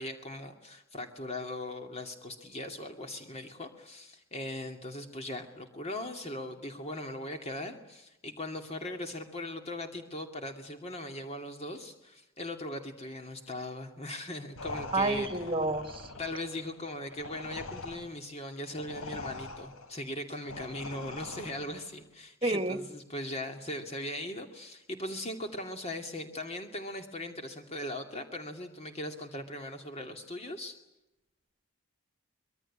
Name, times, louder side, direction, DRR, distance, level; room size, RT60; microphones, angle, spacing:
voice 1, 0.0-15.5 16.2-30.8, left 1 dB, 30° left, 5 dB, 2.5 m, -39 dB
sound 1, 14.6-21.9, left 3 dB, 85° left, 3.8 m, -43 dB
voice 2, 14.9-16.1 22.4-22.8, right 2 dB, 25° right, 10 dB, 1.8 m, -29 dB
25.0 x 22.5 x 8.6 m, 0.91 s
head